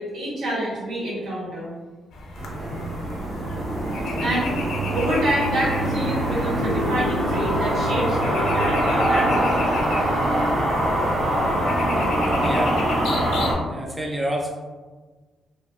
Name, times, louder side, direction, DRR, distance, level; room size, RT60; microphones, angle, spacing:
voice 1, 0.0-1.7 4.2-4.5 4.9-9.6, right 1 dB, 85° right, -8 dB, 1.4 m, -27 dB
sound 1, 2.1-13.6, left 3 dB, 75° left, 0.4 m, -34 dB
sound 2, 2.4-13.5, right 1 dB, 50° right, 1.0 m, -23 dB
voice 2, 12.4-12.8 13.7-14.5, right 1 dB, 5° right, -2 dB, 0.4 m, -27 dB
3.5 x 2.0 x 2.6 m, 1.3 s
cardioid pair, 135°, 0 cm